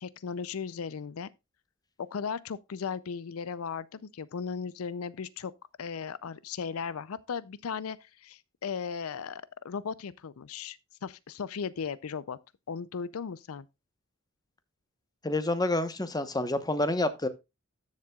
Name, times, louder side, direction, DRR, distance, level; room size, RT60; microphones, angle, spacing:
voice 1, 0.0-1.3 2.0-5.5 5.8-12.4 12.7-13.7, left 6 dB, 85° left, 0.5 m, -36 dB
voice 2, 15.2-17.3, left 2 dB, 20° left, 1.0 m, -28 dB
13.5 x 7.5 x 2.3 m
head